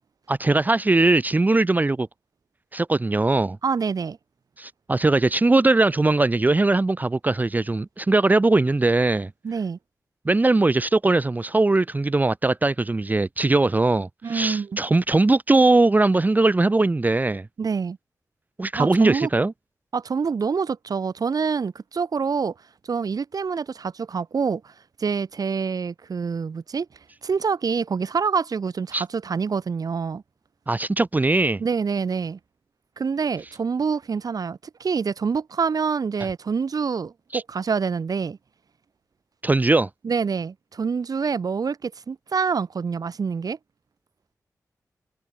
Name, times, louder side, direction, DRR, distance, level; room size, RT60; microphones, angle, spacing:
voice 1, 0.3-2.1 2.7-3.6 4.6-9.3 10.3-17.5 18.6-19.5 28.9-29.0 30.7-31.6 37.3-37.4 39.4-39.9, right 2 dB, 25° right, 0.7 m, -20 dB
voice 2, 3.6-4.2 9.4-9.8 14.2-14.8 17.6-18.0 18.8-19.3 19.9-22.5 22.8-24.7 25.0-26.9 27.2-30.2 31.6-32.4 33.0-38.4 40.0-43.6, right 5 dB, 70° right, 2.9 m, -26 dB
wide cardioid pair, 80°, 7 cm